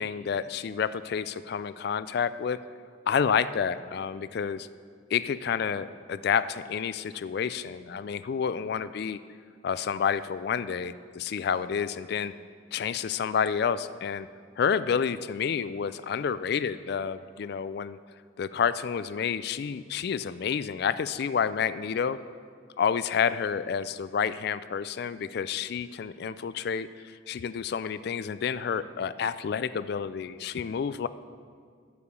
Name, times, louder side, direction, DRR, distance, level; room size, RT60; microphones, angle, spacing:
voice 1, 0.0-2.6 3.1-4.7 5.1-9.2 9.6-12.3 12.7-14.3 14.6-18.0 18.4-22.2 22.8-31.1, left 7 dB, 55° left, 14 dB, 0.3 m, -29 dB
13.5 x 4.9 x 7.0 m, 2.1 s
head